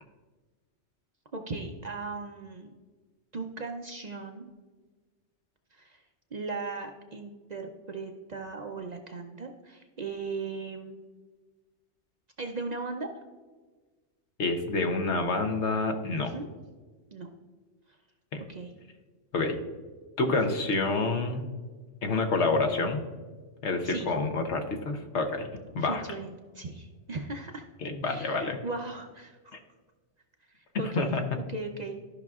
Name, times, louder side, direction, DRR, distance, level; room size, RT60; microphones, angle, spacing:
voice 1, 1.3-2.7 3.3-4.5 5.7-6.0 6.3-11.0 12.4-13.1 16.1-16.5 17.1-17.3 18.5-18.7 20.3-20.6 23.8-24.1 25.8-27.7 28.0-29.6 30.5-31.1 31.5-32.0, right 3 dB, 50° right, 4 dB, 0.6 m, -38 dB
voice 2, 14.4-16.3 18.3-18.4 19.3-19.6 20.2-21.5 22.0-23.0 23.6-25.5 25.7-26.0 27.8-28.6 31.0-31.2, left 3 dB, 75° left, 5 dB, 1.1 m, -28 dB
13.5 x 5.8 x 2.4 m, 1.4 s
omnidirectional pair, 1.2 m